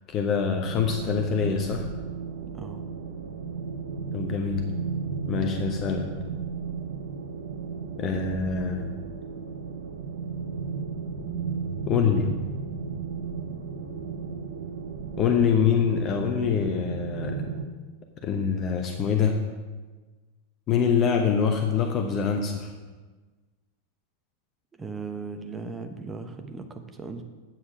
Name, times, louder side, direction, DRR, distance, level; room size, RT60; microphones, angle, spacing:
voice 1, 0.1-1.9 4.1-4.6 5.3-6.1 8.0-8.8 11.9-12.3 15.2-17.4 18.2-19.4 20.7-22.7, left 6 dB, 30° left, 4 dB, 0.9 m, -25 dB
sound 1, 0.6-17.6, right 5 dB, 60° right, 0.8 m, -34 dB
voice 2, 24.8-27.2, right 4 dB, 15° right, 6 dB, 1.0 m, -37 dB
8.9 x 7.2 x 5.0 m, 1.3 s
figure-of-eight pair, 90°, 0 cm